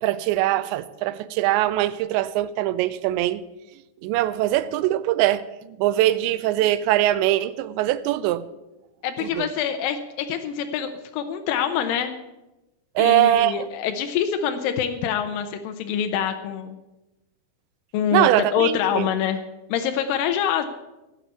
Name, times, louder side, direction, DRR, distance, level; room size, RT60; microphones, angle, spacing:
voice 1, 0.0-3.4 4.0-8.4 9.2-9.5 13.0-13.7 18.1-19.1, right 14 dB, 90° right, 2.9 m, -22 dB
voice 2, 9.0-12.1 13.0-16.8 17.9-19.4 19.7-20.7, left 8 dB, 80° left, 2.0 m, -25 dB
16.0 x 6.1 x 8.1 m
omnidirectional pair, 5.0 m